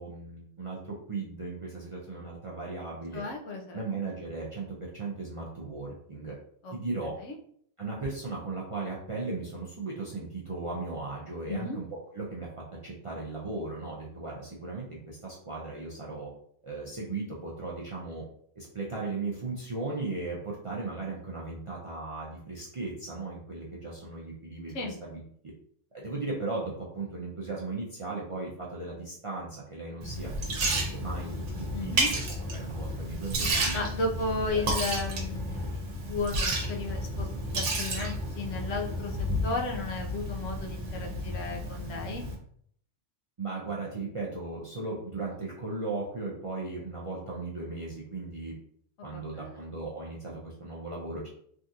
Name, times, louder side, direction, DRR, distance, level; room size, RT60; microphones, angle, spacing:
voice 1, 0.0-3.3 3.7-6.4 6.7-7.1 7.8-11.9 12.1-16.3 16.6-18.2 18.6-25.2 25.9-33.7 34.5-34.6 43.4-48.6 49.0-51.3, right 3 dB, 45° right, -5 dB, 0.4 m, -37 dB
voice 2, 3.1-3.8 6.6-6.7 7.2-7.3 11.5-11.8 24.7-25.0 31.7-32.1 33.7-37.3 37.5-39.2 39.4-42.3 49.0-49.6, left 3 dB, 90° left, 2 dB, 1.0 m, -34 dB
Liquid, 30.0-42.3, right 1 dB, 70° right, 1.1 m, -32 dB
3.5 x 2.4 x 2.7 m, 0.65 s
omnidirectional pair, 1.3 m